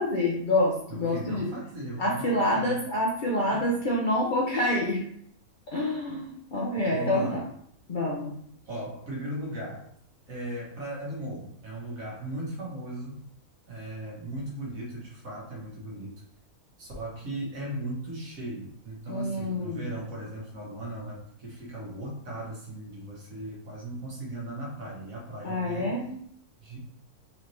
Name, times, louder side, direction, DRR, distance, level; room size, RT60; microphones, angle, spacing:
voice 1, 0.0-1.5 2.0-5.1 5.7-7.4 7.9-8.3 19.1-19.9 25.4-26.0, left 1 dB, 50° left, -4 dB, 0.6 m, -27 dB
voice 2, 0.9-2.8 3.5-3.6 6.9-7.4 8.7-9.9 10.3-13.2 13.7-16.2 16.8-26.0 26.6-26.8, right 1 dB, 70° right, -4 dB, 1.7 m, -37 dB
4.4 x 3.1 x 2.6 m, 0.67 s
omnidirectional pair, 1.5 m